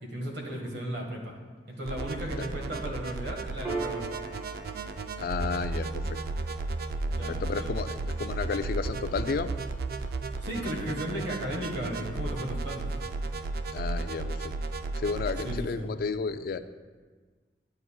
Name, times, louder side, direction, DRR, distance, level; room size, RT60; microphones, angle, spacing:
voice 1, 0.0-1.3 1.7-4.0 7.1-7.8 10.4-12.9 15.4-15.9, equal, 75° right, 1 dB, 1.6 m, -35 dB
sound 1, 1.9-15.6, right 3 dB, 55° right, 0.4 m, -34 dB
Piano, 3.6-10.6, right 3 dB, 15° right, 0.9 m, -42 dB
voice 2, 5.2-6.2 7.3-9.5 13.7-14.5 14.9-16.6, left 5 dB, 55° left, 11 dB, 0.3 m, -32 dB
10.5 x 8.8 x 2.3 m, 1.4 s
head